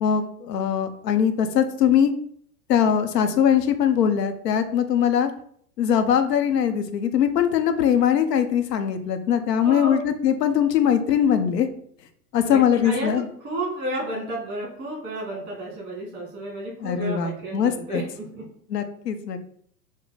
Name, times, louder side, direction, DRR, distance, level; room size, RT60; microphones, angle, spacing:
voice 1, 0.0-2.1 2.7-5.3 5.8-11.7 12.3-13.2 16.8-18.0 18.7-19.5, left 8 dB, 80° left, 8 dB, 0.7 m, -21 dB
voice 2, 9.6-10.0 12.4-18.5, right 1 dB, 20° right, -2 dB, 1.8 m, -32 dB
4.8 x 2.1 x 3.9 m, 0.63 s
hypercardioid pair, 95°, 49 cm